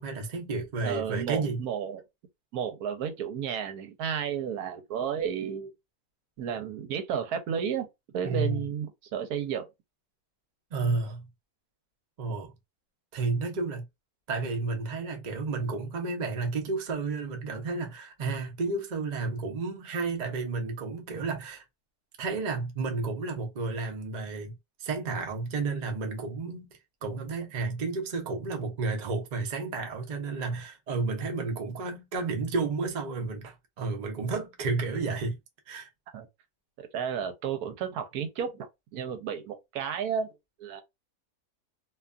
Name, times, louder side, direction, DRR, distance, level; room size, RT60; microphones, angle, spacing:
voice 1, 0.0-1.6 8.2-8.6 10.7-11.3 12.2-12.5 13.1-13.9 14.3-21.6 22.2-26.7 27.0-35.4 35.7-35.9, right 3 dB, 45° right, 0.5 m, -31 dB
voice 2, 0.8-2.0 2.5-5.7 6.4-7.9 8.1-9.7 36.1-36.3 36.8-38.7 38.9-40.3 40.6-40.8, right 8 dB, 75° right, 1.1 m, -32 dB
2.7 x 2.3 x 2.4 m
omnidirectional pair, 1.6 m